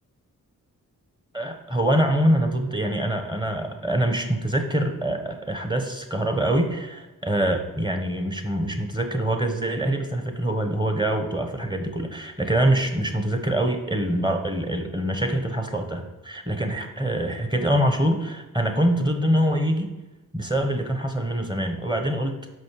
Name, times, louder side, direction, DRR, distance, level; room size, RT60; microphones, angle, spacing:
voice 1, 1.3-19.9 20.3-22.3, right 1 dB, 15° right, 5 dB, 1.3 m, -24 dB
6.3 x 5.2 x 4.9 m, 1.1 s
cardioid pair, 50°, 34 cm